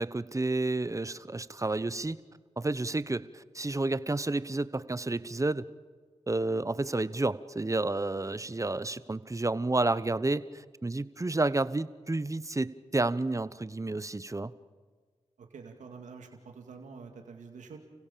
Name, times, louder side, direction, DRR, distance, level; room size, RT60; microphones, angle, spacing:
voice 1, 0.0-2.2 2.6-5.6 6.3-14.5, right 2 dB, 25° right, 16 dB, 1.0 m, -30 dB
voice 2, 15.4-17.8, right 5 dB, 85° right, 3 dB, 2.4 m, -47 dB
30.0 x 16.5 x 7.0 m, 1.5 s
cardioid pair, 45°, 12 cm